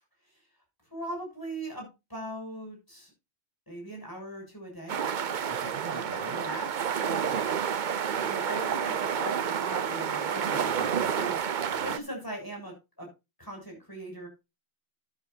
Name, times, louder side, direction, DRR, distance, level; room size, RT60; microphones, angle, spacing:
voice 1, 0.9-3.1 3.7-5.0 5.8-7.4 8.2-11.4 11.8-13.1 13.4-14.3, right 1 dB, 20° left, 1 dB, 7.2 m, -40 dB
sound 1, 4.9-12.0, right 8 dB, 50° right, 0.7 m, -29 dB
voice 2, 5.5-6.4 7.3-7.6 10.4-12.0, right 3 dB, 85° right, 0 dB, 2.0 m, -43 dB
12.5 x 11.5 x 2.7 m, 0.26 s
omnidirectional pair, 1.1 m